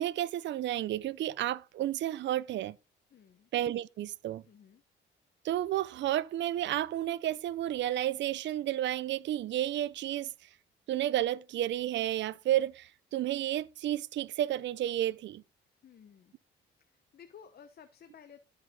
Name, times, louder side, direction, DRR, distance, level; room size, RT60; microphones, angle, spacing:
voice 1, 0.0-2.8 3.5-4.4 5.4-10.3 10.9-15.4, right 13 dB, 65° right, 0.5 m, -31 dB
voice 2, 3.1-3.5 4.4-4.8 15.8-16.3 16.9-18.4, left 7 dB, 50° left, 1.0 m, -55 dB
16.5 x 5.5 x 3.7 m
cardioid pair, 90°, 20 cm